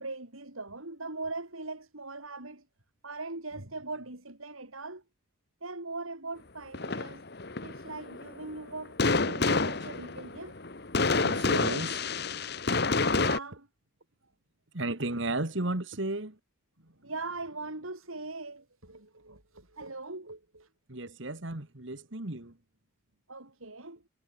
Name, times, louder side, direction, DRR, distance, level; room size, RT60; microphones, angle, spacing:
voice 1, 0.0-2.7 3.0-5.0 5.6-7.2 7.6-10.5 11.6-11.8 13.1-13.7 16.8-20.7 23.3-24.0, right 3 dB, 80° right, 5.1 m, -41 dB
sound 1, 6.7-13.4, left 3 dB, 50° left, 1.4 m, -28 dB
voice 2, 11.2-12.0 14.7-16.4 20.9-22.6, right 2 dB, 60° right, 2.1 m, -34 dB
head